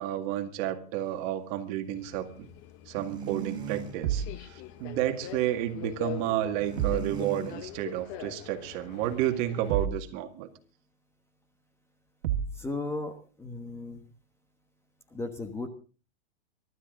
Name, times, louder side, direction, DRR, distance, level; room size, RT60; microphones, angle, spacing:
voice 1, 0.0-2.5 2.9-10.5, right 12 dB, 40° right, 7 dB, 2.0 m, -31 dB
Subway metro underground, 1.9-9.9, left 13 dB, 35° left, 1.0 m, -44 dB
sound 1, 3.0-4.0 6.6-7.6, right 7 dB, 15° right, 5.5 m, -37 dB
sound 2, 4.0-4.4 6.8-7.1 9.7-10.1 12.2-12.6, right 9 dB, 60° right, 2.0 m, -29 dB
voice 2, 12.5-14.1 15.1-15.7, left 2 dB, 5° left, 7 dB, 1.2 m, -36 dB
24.5 x 12.5 x 3.8 m, 0.37 s
supercardioid pair, 150°, 34 cm